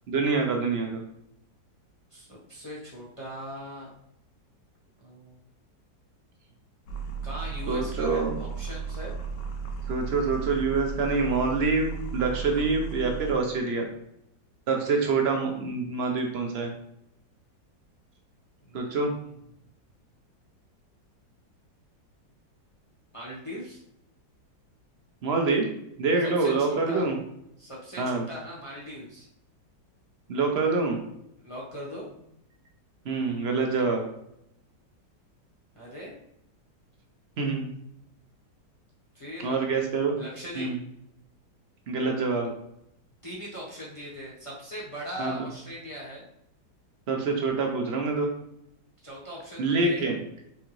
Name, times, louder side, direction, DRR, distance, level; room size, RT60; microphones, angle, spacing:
voice 1, 0.1-1.0 7.7-8.4 9.9-13.8 14.7-16.7 18.7-19.1 25.2-25.7 26.0-27.1 28.0-28.2 30.3-31.0 33.0-34.1 37.4-37.7 39.4-40.2 40.6-40.8 41.9-42.5 45.2-45.3 47.1-48.3 49.6-50.2, right 4 dB, 60° right, 2 dB, 0.6 m, -26 dB
voice 2, 2.1-3.9 5.0-5.4 7.2-9.1 18.6-19.0 23.1-23.8 26.2-27.1 27.6-29.3 31.4-32.3 35.7-36.1 39.1-39.7 40.2-40.7 43.2-46.2 49.0-50.1, equal, 25° left, -5 dB, 0.8 m, -40 dB
sound 1, 6.9-13.3, right 6 dB, 70° left, 1.4 m, -35 dB
4.6 x 3.7 x 3.1 m, 0.77 s
omnidirectional pair, 2.0 m